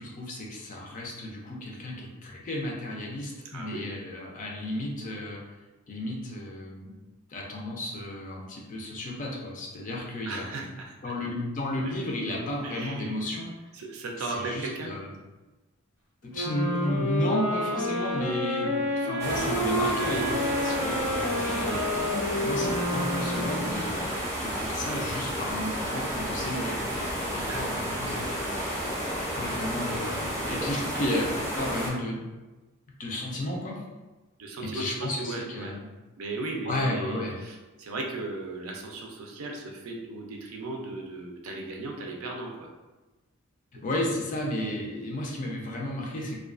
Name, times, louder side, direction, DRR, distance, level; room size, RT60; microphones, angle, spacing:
voice 1, 0.0-5.4 5.9-7.0 7.3-10.5 11.0-13.5 14.2-15.1 16.2-24.1 24.4-29.1 29.3-32.2 33.0-33.8 34.6-35.8 36.7-37.4 43.8-46.4, left 1 dB, 35° left, -2 dB, 0.4 m, -33 dB
voice 2, 3.5-3.9 10.3-11.1 11.9-12.0 12.6-13.2 13.7-14.9 18.5-18.6 21.6-21.8 27.4-27.7 34.4-35.7 36.2-42.7, right 2 dB, 75° right, 1 dB, 0.4 m, -36 dB
sound 1, 16.3-24.0, equal, 90° left, 1.1 m, -29 dB
sound 2, 19.2-31.9, equal, 15° right, 0.6 m, -31 dB
2.3 x 2.3 x 2.4 m, 1.2 s
head